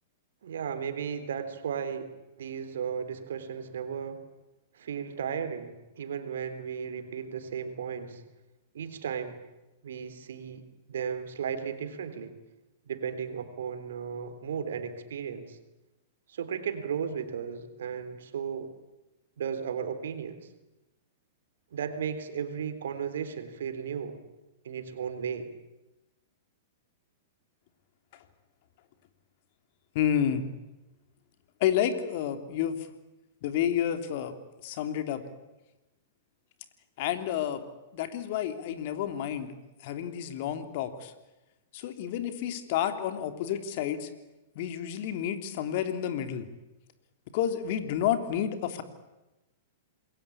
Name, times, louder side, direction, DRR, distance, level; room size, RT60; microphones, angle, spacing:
voice 1, 0.4-4.3 4.7-8.2 8.7-9.4 9.8-12.3 12.9-15.6 16.3-18.7 19.4-20.5 21.7-24.2 24.6-25.5, right 7 dB, 75° right, 9 dB, 3.5 m, -35 dB
voice 2, 29.9-30.4 31.6-32.8 33.4-34.3 34.6-35.2 37.0-37.6 37.9-39.5 39.8-41.1 41.7-44.1 44.5-46.5 47.3-48.8, left 10 dB, 55° left, 8 dB, 3.2 m, -30 dB
27.5 x 21.5 x 8.6 m, 1.0 s
hypercardioid pair, 115°, 0 cm